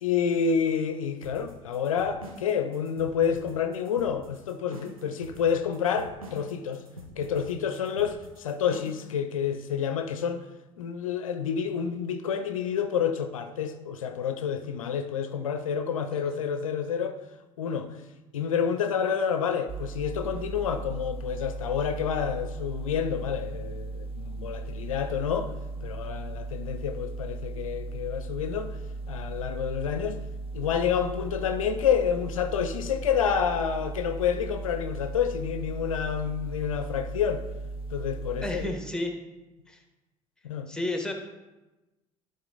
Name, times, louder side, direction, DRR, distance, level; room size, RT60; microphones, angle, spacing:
voice 1, 0.0-6.8 7.2-10.4 10.8-17.2 17.6-17.9 18.3-25.5 25.8-28.8 29.1-30.2 30.5-37.4 37.9-38.7 40.4-40.7, left 7 dB, 75° left, 9 dB, 0.5 m, -29 dB
sound 1, 1.2-9.1, equal, 85° right, 1.2 m, -45 dB
sound 2, 19.7-38.7, right 3 dB, 35° right, 0.8 m, -37 dB
voice 2, 38.4-39.1 39.7-39.8 40.7-41.1, left 1 dB, 5° left, 4 dB, 1.4 m, -32 dB
11.5 x 4.0 x 4.0 m, 1.1 s
figure-of-eight pair, 60°, 17 cm